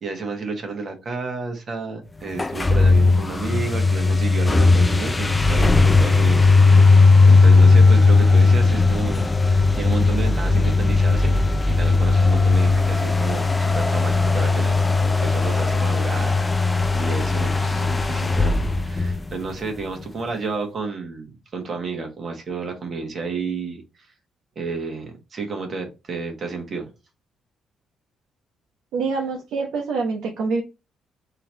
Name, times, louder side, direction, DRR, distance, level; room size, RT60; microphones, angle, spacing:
voice 1, 0.0-11.4 11.7-23.8 24.5-26.9, right 4 dB, 45° right, 3 dB, 1.5 m, -31 dB
sound 1, 2.3-19.8, left 3 dB, 20° left, 0.4 m, -17 dB
voice 2, 28.9-30.6, right 4 dB, 80° right, 0 dB, 0.9 m, -25 dB
3.7 x 2.9 x 3.4 m, 0.27 s
cardioid pair, 90°, 0 cm